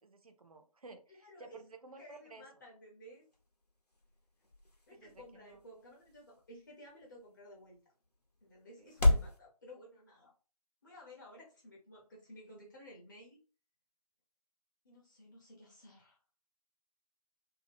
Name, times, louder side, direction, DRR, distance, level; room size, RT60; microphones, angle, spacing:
voice 1, 0.0-2.4 4.9-5.6 8.8-8.9, right 3 dB, 65° right, 7 dB, 0.5 m, -54 dB
voice 2, 1.1-1.6 2.0-3.2 4.9-7.8 8.4-10.3 10.8-13.4 14.8-16.2, equal, 30° left, -3 dB, 0.6 m, -55 dB
sound 1, 3.1-9.4, left 2 dB, 85° left, 0.9 m, -36 dB
2.7 x 2.0 x 3.2 m, 0.36 s
figure-of-eight pair, 150°, 20 cm